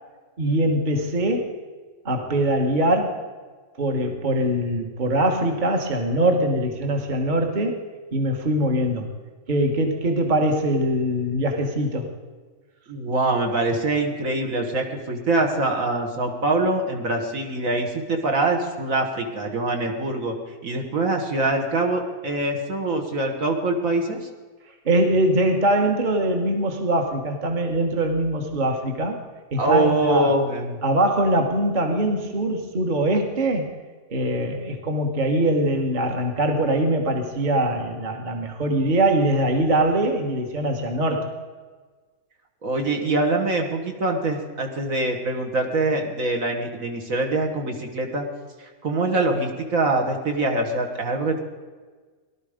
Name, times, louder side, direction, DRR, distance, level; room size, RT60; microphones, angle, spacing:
voice 1, 0.4-1.5 2.0-3.2 3.8-7.8 8.1-9.1 9.5-12.1 24.8-29.2 29.5-30.3 30.8-33.7 34.1-41.4, right 1 dB, 35° right, 4 dB, 1.5 m, -22 dB
voice 2, 12.9-20.3 20.6-24.2 29.6-30.8 42.6-48.3 48.6-51.4, right 2 dB, 60° right, 2 dB, 2.0 m, -24 dB
18.0 x 12.0 x 5.1 m, 1.4 s
omnidirectional pair, 1.6 m